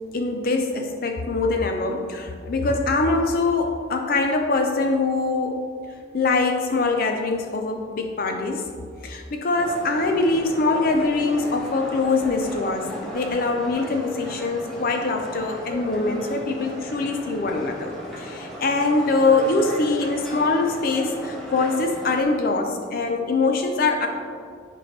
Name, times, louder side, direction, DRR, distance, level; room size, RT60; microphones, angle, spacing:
voice 1, 0.1-5.6 6.1-8.7 9.0-17.9 18.2-24.1, left 3 dB, 50° left, 4 dB, 0.4 m, -23 dB
sound 1, 9.6-22.2, equal, ahead, 1.1 m, -36 dB
10.5 x 4.3 x 3.2 m, 2.2 s
head